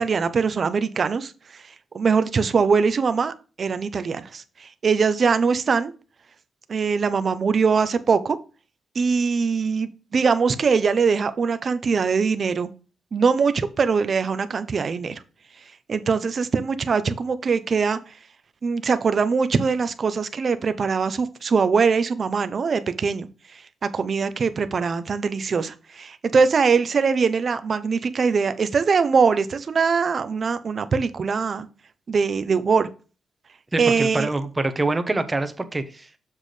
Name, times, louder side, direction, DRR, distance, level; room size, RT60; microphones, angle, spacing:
voice 1, 0.0-1.3 1.9-5.9 6.7-8.4 8.9-12.7 13.1-15.2 15.9-18.0 18.6-23.6 23.9-31.7 32.1-32.9 33.8-34.3, right 5 dB, 45° right, 12 dB, 0.8 m, -22 dB
voice 2, 33.7-36.2, right 2 dB, 20° right, 9 dB, 1.0 m, -25 dB
7.2 x 6.4 x 3.3 m, 0.35 s
cardioid pair, 100°, 0 cm